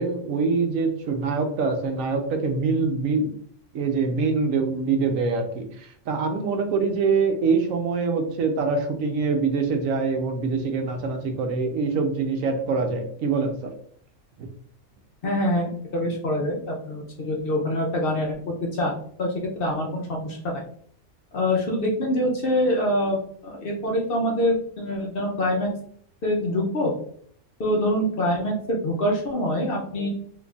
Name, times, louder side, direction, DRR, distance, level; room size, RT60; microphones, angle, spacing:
voice 1, 0.0-3.3 3.7-13.7 14.4-14.5, right 4 dB, 85° right, 5 dB, 1.0 m, -24 dB
voice 2, 15.2-18.9 19.2-20.6 21.3-25.7 26.2-26.9 27.6-30.1, left 1 dB, 55° left, -1 dB, 0.7 m, -25 dB
3.9 x 2.8 x 2.3 m, 0.62 s
omnidirectional pair, 1.4 m